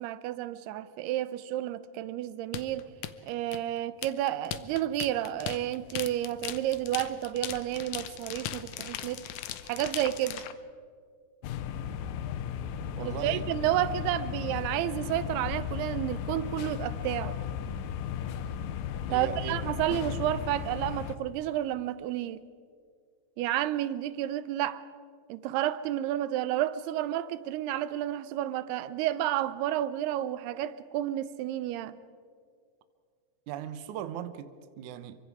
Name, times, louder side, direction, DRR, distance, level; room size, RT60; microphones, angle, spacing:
voice 1, 0.0-2.9 3.3-9.3 9.6-10.4 13.0-17.4 19.1-22.4 23.4-24.8 25.3-32.0, right 13 dB, 85° right, 2.8 m, -31 dB
sound 1, 2.5-10.5, left 12 dB, 90° left, 1.6 m, -38 dB
sound 2, 11.4-21.2, left 8 dB, 75° left, 2.2 m, -35 dB
voice 2, 13.0-13.5 19.1-19.6 33.5-35.2, right 10 dB, 70° right, 2.0 m, -38 dB
28.0 x 24.0 x 4.8 m
omnidirectional pair, 4.5 m